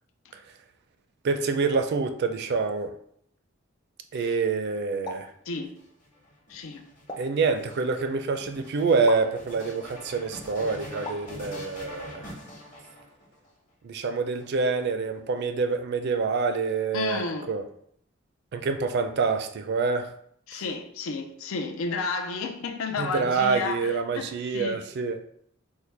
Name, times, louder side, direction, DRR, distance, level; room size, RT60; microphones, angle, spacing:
voice 1, 1.2-2.9 4.1-5.3 7.2-12.3 13.8-17.6 18.5-20.1 20.5-20.6 23.0-25.2, right 4 dB, 55° right, 0.4 m, -26 dB
sound 1, 5.0-5.4 7.1-7.4 9.1-9.3 11.0-11.4, left 1 dB, 20° left, 0.5 m, -38 dB
voice 2, 5.5-5.8 6.5-6.9 16.9-17.5 20.5-24.8, left 4 dB, 85° left, 0.5 m, -32 dB
sound 2, 5.5-13.5 14.3-15.2, equal, 40° left, 1.0 m, -44 dB
4.4 x 2.1 x 3.3 m
head